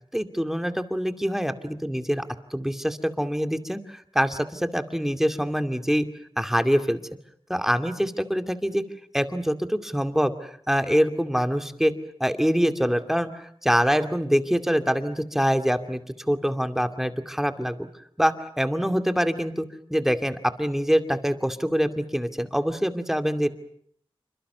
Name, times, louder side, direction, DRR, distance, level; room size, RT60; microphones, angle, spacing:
voice 1, 0.1-2.2 2.5-6.1 6.4-7.0 7.5-8.8 9.1-11.9 12.2-16.0 16.3-17.9 18.2-23.5, equal, 5° right, 8 dB, 2.4 m, -25 dB
28.0 x 25.5 x 6.9 m, 0.64 s
wide cardioid pair, 65°, 10 cm